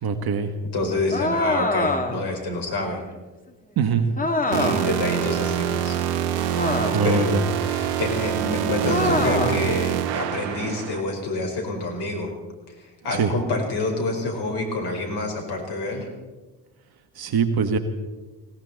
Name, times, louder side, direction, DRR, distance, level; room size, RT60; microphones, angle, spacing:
voice 1, 0.0-0.5 3.8-4.1 6.9-7.4 13.1-13.3 17.2-17.8, right 5 dB, 50° right, 9 dB, 1.6 m, -22 dB
voice 2, 0.7-3.0 4.4-6.0 7.0-12.3 12.7-16.1, left 2 dB, 55° left, 2 dB, 4.9 m, -28 dB
sound 1, 1.1-2.3 4.2-5.0 6.5-7.2 8.9-9.7, left 2 dB, 15° left, 2.1 m, -25 dB
sound 2, 4.5-11.0, right 10 dB, 80° right, 1.0 m, -25 dB
19.5 x 17.5 x 4.2 m, 1.2 s
hypercardioid pair, 50°, 48 cm